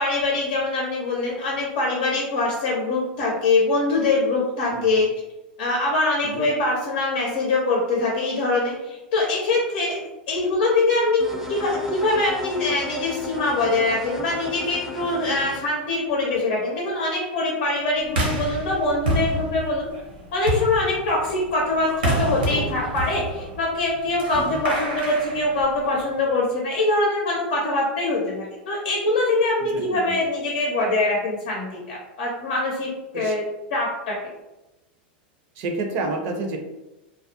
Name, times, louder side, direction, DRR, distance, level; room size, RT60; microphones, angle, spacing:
voice 1, 0.0-5.1 5.6-19.9 20.3-33.4 33.7-34.2, left 2 dB, 70° left, -2 dB, 0.6 m, -23 dB
sound 1, 11.2-15.6, left 3 dB, 5° right, 0.5 m, -35 dB
sound 2, 18.1-26.2, right 1 dB, 85° right, 0.8 m, -29 dB
voice 2, 29.6-30.2 33.1-33.3 35.6-36.6, right 3 dB, 50° right, 4 dB, 0.5 m, -30 dB
2.3 x 2.1 x 2.7 m, 1.0 s
hypercardioid pair, 110°, 5 cm